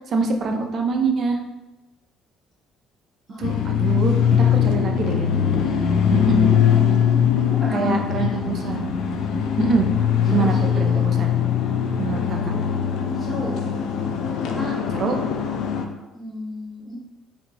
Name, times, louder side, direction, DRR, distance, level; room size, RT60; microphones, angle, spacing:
voice 1, 0.1-1.4 3.4-5.3 6.1-6.6 7.7-8.9 9.6-9.9 10.3-11.4 12.0-12.5 14.9-15.2, right 4 dB, 40° right, 3 dB, 0.5 m, -24 dB
voice 2, 3.3-3.6 3.9-4.0 5.6-5.8 7.4-7.9 8.2-8.3 8.6-8.7 10.3-11.0 13.1-13.5 14.4-14.7 16.1-16.9, equal, 10° left, -8 dB, 1.4 m, -34 dB
sound 1, 3.4-15.9, left 8 dB, 65° left, 0.4 m, -21 dB
4.2 x 2.7 x 2.8 m, 1.0 s
cardioid pair, 145°, 0 cm